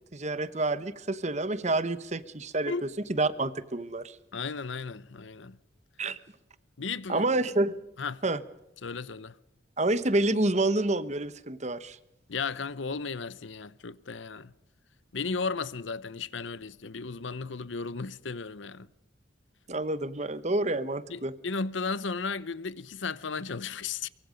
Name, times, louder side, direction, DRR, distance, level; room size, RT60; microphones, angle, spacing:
voice 1, 0.1-2.7 3.1-4.2 6.0-6.2 7.1-7.8 8.2-8.4 9.8-12.0 19.7-21.3, right 2 dB, 35° right, 1.0 m, -28 dB
voice 2, 4.3-5.6 6.8-7.3 8.0-8.2 8.8-9.4 12.3-14.5 15.1-18.9 21.1-24.1, left 4 dB, 70° left, 0.8 m, -35 dB
24.0 x 23.5 x 5.2 m
head